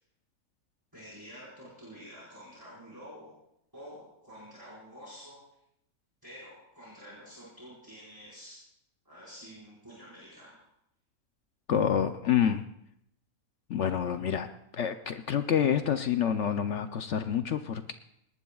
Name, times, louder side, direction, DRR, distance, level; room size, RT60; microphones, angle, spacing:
voice 1, 0.9-3.3 3.7-5.4 6.2-8.6 9.0-10.6, equal, 15° right, -9 dB, 4.9 m, -48 dB
voice 2, 11.7-12.6 13.7-14.5 14.7-17.9, left 8 dB, 60° left, 9 dB, 0.9 m, -27 dB
21.0 x 19.0 x 2.3 m, 0.77 s
omnidirectional pair, 1.5 m